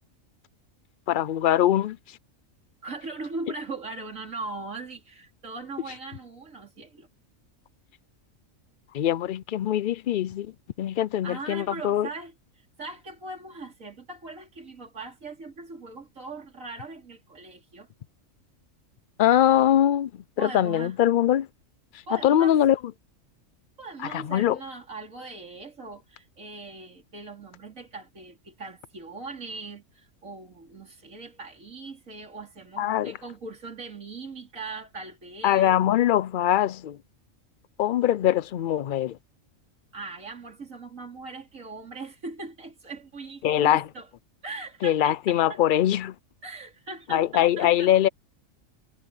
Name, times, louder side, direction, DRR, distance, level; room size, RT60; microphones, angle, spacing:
voice 1, 1.1-2.0 8.9-10.5 10.8-12.1 19.2-21.5 22.2-22.8 24.0-24.6 32.8-33.2 35.4-37.0 37.8-39.2 43.4-43.9 44.8-46.1 47.1-48.1, left 11 dB, 70° left, 0.5 m, -22 dB
voice 2, 2.8-7.1 11.2-17.9 20.4-20.9 22.1-22.6 23.8-35.8 39.9-44.1 44.4-45.6 46.4-47.9, right 3 dB, 75° right, 4.1 m, -40 dB
omnidirectional pair, 1.4 m